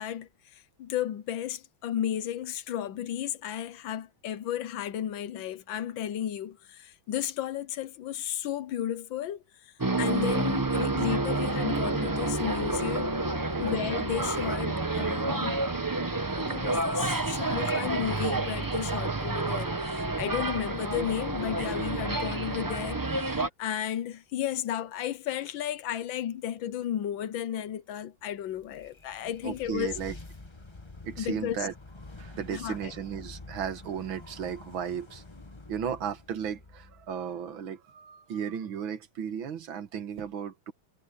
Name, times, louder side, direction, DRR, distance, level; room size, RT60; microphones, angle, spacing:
voice 1, 0.0-13.1 13.6-15.6 16.4-30.0 31.2-31.6 32.5-32.9, left 10 dB, 75° left, 1.5 m, -33 dB
sound 1, 9.8-23.5, right 2 dB, 25° right, 0.4 m, -29 dB
voice 2, 13.5-13.9 29.4-30.2 31.0-31.7 32.2-35.2 35.7-40.7, right 8 dB, 75° right, 2.1 m, -35 dB
sound 2, 28.5-37.6, left 2 dB, 15° left, 1.1 m, -48 dB
omnidirectional pair, 2.2 m